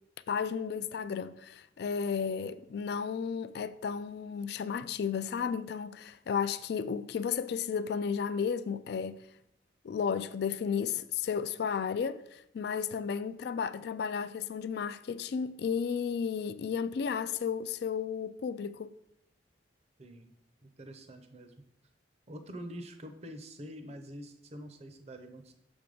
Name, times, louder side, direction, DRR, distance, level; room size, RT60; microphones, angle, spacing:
voice 1, 0.3-9.2 9.8-18.9, left 6 dB, 60° left, 0.3 m, -33 dB
voice 2, 20.0-20.3 20.6-21.5 22.3-25.5, equal, 35° right, 0.7 m, -46 dB
6.7 x 3.5 x 5.2 m
head